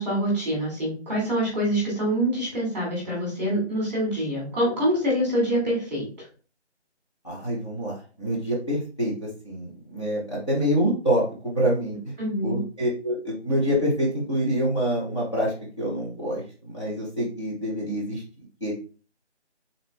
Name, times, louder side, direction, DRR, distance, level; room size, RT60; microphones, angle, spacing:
voice 1, 0.0-6.3 12.2-12.6, equal, 10° right, -5 dB, 2.0 m, -25 dB
voice 2, 7.2-12.1 12.4-18.2 18.6-18.7, equal, 25° left, -8 dB, 1.1 m, -26 dB
3.9 x 3.8 x 3.4 m, 0.37 s
figure-of-eight pair, 165°, 35 cm